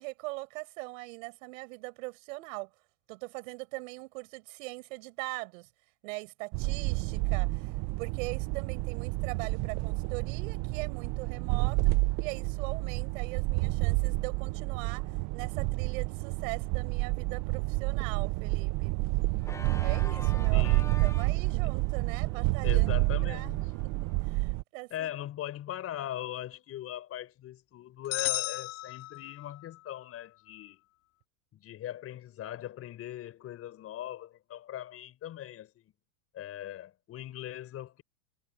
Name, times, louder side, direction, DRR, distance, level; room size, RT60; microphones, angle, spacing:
voice 1, 0.0-2.7 3.1-5.7 6.0-19.0 19.8-20.7 21.0-22.9 23.2-25.1, right 25 dB, 65° right, 5.6 m, -41 dB
sound 1, 6.5-24.6, right 22 dB, 40° right, 0.7 m, -29 dB
Organ, 19.4-24.3, left 3 dB, 5° left, 1.0 m, -47 dB
voice 2, 20.5-21.0 22.6-23.7 24.9-30.8 31.5-35.9 36.3-38.0, left 12 dB, 35° left, 5.3 m, -40 dB
sound 2, 28.1-29.7, left 24 dB, 65° left, 2.5 m, -34 dB
supercardioid pair, 145°, 43 cm